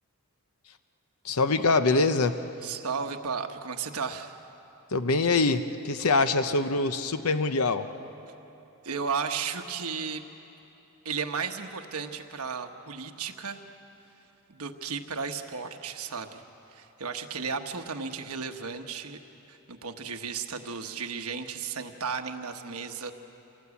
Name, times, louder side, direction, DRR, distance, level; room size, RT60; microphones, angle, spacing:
voice 1, 1.2-2.3 4.9-7.9, left 3 dB, 70° left, 10 dB, 0.8 m, -24 dB
voice 2, 2.6-4.4 6.3-6.5 8.8-10.2 11.0-13.6 14.5-16.4 16.7-19.2 19.5-23.1, right 5 dB, 75° right, 5 dB, 1.2 m, -34 dB
26.5 x 18.5 x 8.4 m, 3.0 s
head